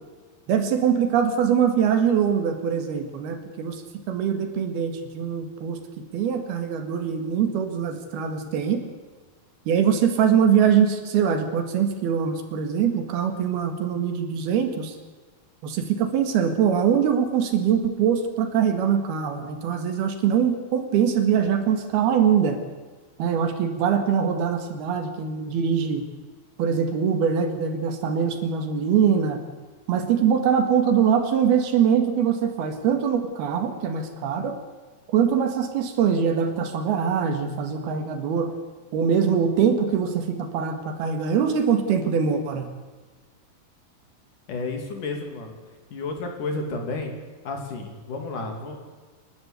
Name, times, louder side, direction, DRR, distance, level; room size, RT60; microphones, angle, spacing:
voice 1, 0.5-5.8 6.1-8.8 9.7-15.0 15.6-22.6 23.2-26.1 26.6-29.4 29.9-34.6 35.1-38.5 38.9-42.7, right 7 dB, 80° right, 7 dB, 3.8 m, -23 dB
voice 2, 44.5-45.6 45.9-47.1 47.4-48.8, left 3 dB, 55° left, 3 dB, 4.1 m, -31 dB
28.0 x 12.0 x 8.3 m, 1.4 s
omnidirectional pair, 4.4 m